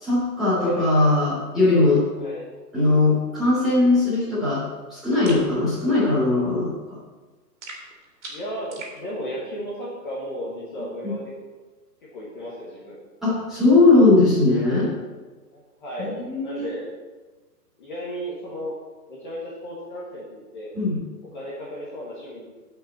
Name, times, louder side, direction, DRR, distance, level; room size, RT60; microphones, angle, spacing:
voice 1, 0.0-2.0 2.7-4.6 4.9-7.0 11.0-11.1 13.2-14.9 16.0-16.7 20.7-21.0, left 2 dB, ahead, -13 dB, 3.1 m, -19 dB
voice 2, 0.6-1.1 2.2-2.4 8.3-11.3 12.0-13.0 15.5-16.1 16.4-16.8 17.8-18.7 19.1-20.7 21.3-22.5, equal, 30° left, -6 dB, 1.7 m, -34 dB
sound 1, 5.2-5.5 7.6-9.0, right 2 dB, 45° right, 2.8 m, -39 dB
16.0 x 5.8 x 4.2 m, 1.3 s
hypercardioid pair, 180°, 48 cm